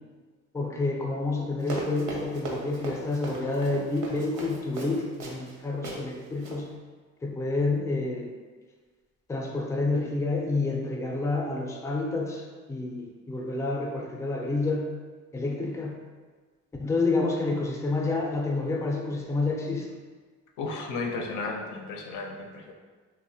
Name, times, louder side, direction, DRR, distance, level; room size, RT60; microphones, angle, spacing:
voice 1, 0.5-6.7 7.2-8.3 9.3-14.9 15.3-16.0 16.8-19.9, left 3 dB, 10° left, 0 dB, 0.3 m, -29 dB
Run, 1.6-5.5 5.8-6.0 6.4-6.6, right 2 dB, 85° right, 0.6 m, -36 dB
voice 2, 20.6-22.7, left 3 dB, 90° left, 2 dB, 0.5 m, -34 dB
2.9 x 2.1 x 2.6 m, 1.4 s
cardioid pair, 90°, 30 cm